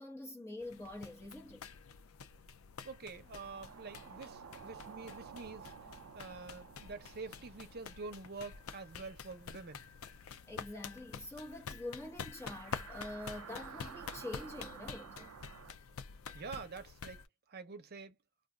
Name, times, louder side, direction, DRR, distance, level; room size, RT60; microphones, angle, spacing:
voice 1, 0.0-1.7 10.5-15.3 16.3-16.4, left 1 dB, 15° left, 1.0 m, -46 dB
sound 1, 0.6-17.3, left 6 dB, 85° left, 0.5 m, -48 dB
voice 2, 2.8-5.7 6.1-9.9 16.3-17.2 17.5-18.2, right 4 dB, 50° right, 0.8 m, -47 dB
sound 2, 3.2-9.9 10.1-10.2 12.2-15.7, right 7 dB, 75° right, 0.4 m, -53 dB
2.5 x 2.4 x 3.6 m
head